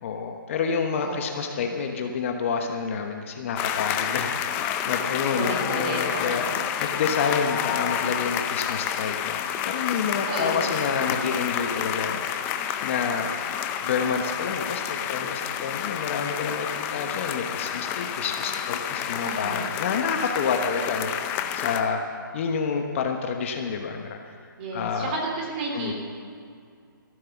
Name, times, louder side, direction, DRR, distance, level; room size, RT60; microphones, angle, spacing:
voice 1, 0.0-6.4 6.8-12.3 12.8-13.3 13.8-21.1 21.5-22.0 22.3-24.2 24.7-25.2 25.7-25.9, left 6 dB, 35° left, 4 dB, 1.2 m, -28 dB
sound 1, 3.6-21.8, left 9 dB, 15° left, 0.6 m, -29 dB
voice 2, 5.3-6.5 10.3-10.7 19.2-19.7 24.6-25.9, right 2 dB, 30° right, 0 dB, 3.2 m, -32 dB
14.5 x 12.0 x 7.2 m, 2.3 s
hypercardioid pair, 160°, 12 cm